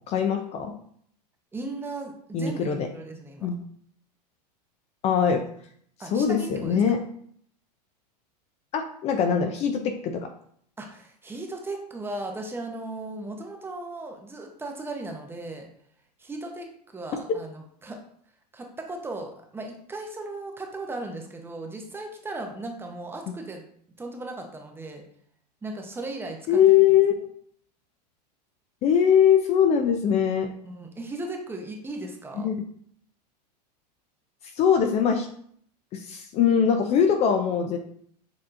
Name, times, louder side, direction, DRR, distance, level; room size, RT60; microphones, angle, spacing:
voice 1, 0.1-0.7 2.3-2.9 3.4-3.6 5.0-5.4 6.1-7.0 8.7-10.3 26.5-27.3 28.8-30.5 32.4-32.5 34.4-35.3 35.9-37.8, left 8 dB, 30° left, 5 dB, 0.4 m, -22 dB
voice 2, 1.5-3.5 6.0-7.0 10.8-15.7 16.2-18.0 18.5-23.6 24.0-25.0 25.6-26.8 30.6-32.5, right 2 dB, 10° right, 2 dB, 0.6 m, -37 dB
6.7 x 2.7 x 2.5 m, 0.63 s
supercardioid pair, 125°, 21 cm